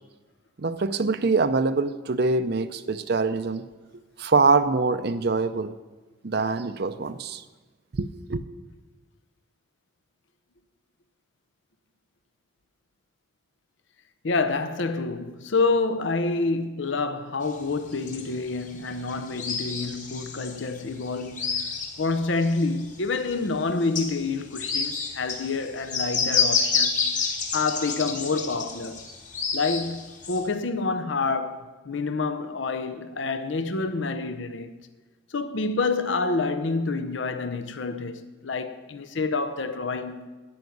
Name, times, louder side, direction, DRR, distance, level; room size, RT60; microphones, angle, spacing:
voice 1, 0.6-3.6 4.2-5.7 6.2-7.4 7.9-8.4, right 4 dB, 55° right, 0.5 m, -24 dB
voice 2, 14.2-21.5 22.0-27.1 27.5-29.1 29.5-34.7 35.3-40.3, left 3 dB, 70° left, 0.7 m, -28 dB
sound 1, 17.5-23.0 23.3-23.4 23.8-30.4, left 5 dB, 40° left, 1.6 m, -29 dB
13.0 x 5.8 x 9.3 m
head